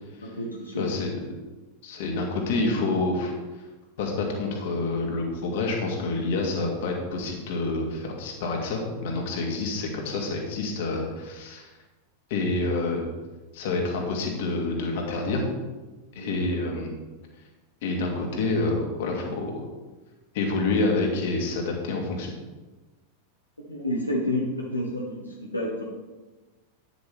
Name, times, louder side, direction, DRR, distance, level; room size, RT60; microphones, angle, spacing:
voice 1, 0.2-0.9 16.1-16.3 23.7-25.8, left 1 dB, 85° left, -2 dB, 1.6 m, -30 dB
voice 2, 0.8-1.1 1.8-3.3 4.0-11.7 12.3-13.1 13.5-15.4 16.1-16.9 17.8-19.6 20.3-22.3, left 3 dB, 50° left, 1 dB, 2.7 m, -27 dB
11.5 x 10.5 x 3.6 m, 1.2 s
figure-of-eight pair, 90°, 0 cm